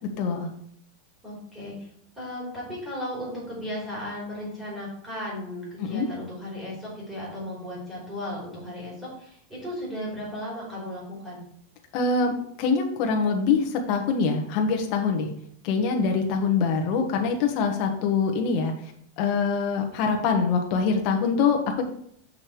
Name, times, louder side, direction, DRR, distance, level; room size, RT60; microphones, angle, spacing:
voice 1, 0.2-0.5 5.8-6.1 11.9-15.3 15.6-18.7 19.2-21.8, left 5 dB, 35° left, 3 dB, 1.3 m, -24 dB
voice 2, 1.2-1.9 2.2-11.4, left 1 dB, 10° right, -7 dB, 3.5 m, -35 dB
6.8 x 5.7 x 4.6 m, 0.66 s
supercardioid pair, 175°, 0 cm